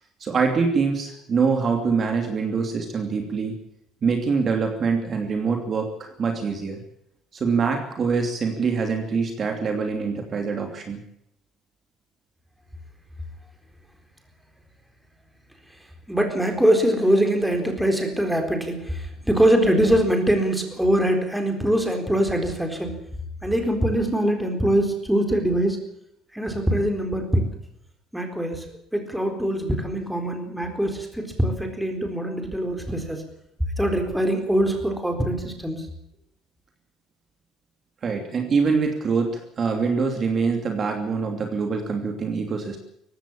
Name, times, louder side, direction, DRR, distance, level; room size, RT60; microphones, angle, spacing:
voice 1, 0.2-3.5 4.0-6.8 7.3-11.0 38.0-42.8, right 5 dB, 35° right, 4 dB, 2.8 m, -24 dB
voice 2, 16.1-23.0 23.4-25.8 26.3-27.5 28.1-33.2 33.8-35.9, right 1 dB, 5° right, 4 dB, 4.1 m, -23 dB
19.0 x 16.0 x 8.7 m, 0.77 s
cardioid pair, 145°, 0 cm